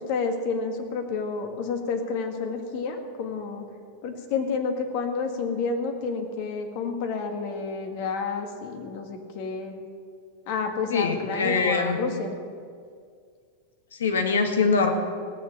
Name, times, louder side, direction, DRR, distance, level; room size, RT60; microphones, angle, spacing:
voice 1, 0.0-3.7 4.0-9.7 10.5-12.4, left 4 dB, 60° left, 5 dB, 1.9 m, -30 dB
voice 2, 10.9-12.0 14.0-14.9, left 4 dB, 90° left, 6 dB, 1.7 m, -23 dB
18.0 x 7.3 x 6.9 m, 2.1 s
hypercardioid pair, 110°, 0 cm